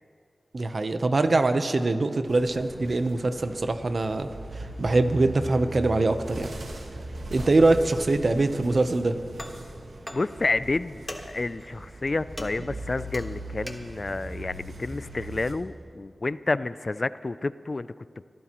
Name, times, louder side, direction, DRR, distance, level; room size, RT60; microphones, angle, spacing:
voice 1, 0.5-4.3 4.5-6.5 7.3-9.2, right 2 dB, 60° right, 9 dB, 0.8 m, -23 dB
sound 1, 2.3-15.5, right 1 dB, 85° right, 1.4 m, -40 dB
sound 2, 9.4-9.7 10.1-10.4 11.1-11.5 12.4-14.1, equal, 10° left, 1.4 m, -40 dB
voice 2, 10.1-17.9, left 3 dB, 45° left, 16 dB, 0.3 m, -30 dB
24.5 x 14.0 x 3.0 m, 2.3 s
wide cardioid pair, 65°, 0 cm